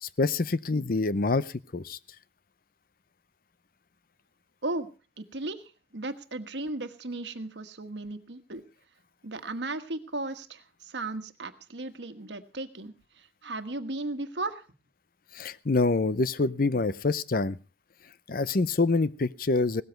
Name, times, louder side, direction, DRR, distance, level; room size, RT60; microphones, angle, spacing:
voice 1, 0.0-2.0 15.3-17.6 18.3-19.8, left 3 dB, 55° left, 17 dB, 0.6 m, -26 dB
voice 2, 5.2-8.6 9.2-14.7, right 2 dB, 80° right, 9 dB, 1.4 m, -36 dB
17.5 x 13.5 x 4.4 m, 0.34 s
head